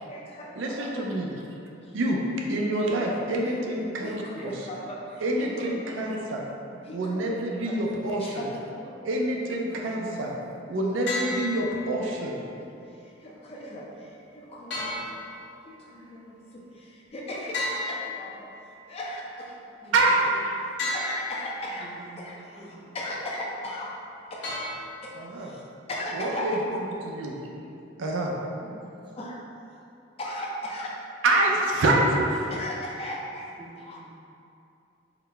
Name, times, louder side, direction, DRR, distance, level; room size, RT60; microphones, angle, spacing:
voice 1, 0.0-1.2 1.8-2.0 3.4-3.6 4.0-6.2 6.8-7.4 7.6-7.8 8.2-9.1 12.0-12.1 12.8-19.5 19.8-19.9 20.9-21.9 22.2-23.9 24.3-24.5 25.0-25.6 25.9-26.8 29.2-29.8 30.2-30.9 32.5-34.1, left 1 dB, 30° left, -3 dB, 0.4 m, -38 dB
voice 2, 0.6-1.3 1.9-4.5 5.2-6.4 6.9-8.4 9.0-12.4 19.9-20.8 25.2-25.5 26.2-26.8 27.1-27.4 28.0-28.3 31.2-32.6, right 1 dB, 90° right, -1 dB, 0.5 m, -26 dB
voice 3, 9.6-10.2 19.8-19.9 21.8-22.3 22.6-23.0 28.6-28.9 33.6-33.7 34.0-34.1, right 2 dB, 25° right, -4 dB, 0.5 m, -47 dB
sound 1, 11.1-12.1 14.7-15.8 17.5-18.8 20.8-21.7 24.4-25.3, left 2 dB, 65° left, 1.0 m, -33 dB
3.8 x 2.1 x 3.3 m, 2.7 s
head